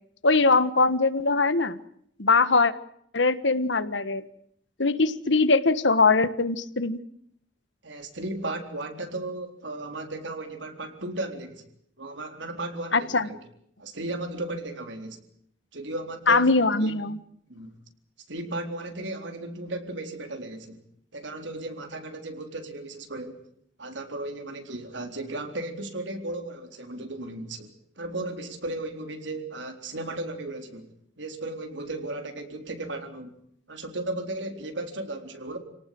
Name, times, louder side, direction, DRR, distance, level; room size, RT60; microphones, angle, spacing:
voice 1, 0.2-1.8 2.2-2.7 3.1-4.2 4.8-7.0 12.9-13.3 16.3-17.2, left 3 dB, 75° left, 13 dB, 1.5 m, -21 dB
voice 2, 7.8-11.6 12.0-13.4 13.8-15.2 15.7-16.5 16.8-17.0 17.5-17.7 18.3-20.8 21.1-23.4 23.8-30.9 31.2-33.3 33.7-35.6, right 2 dB, 75° right, 5 dB, 4.0 m, -35 dB
28.0 x 18.5 x 7.8 m, 0.70 s
head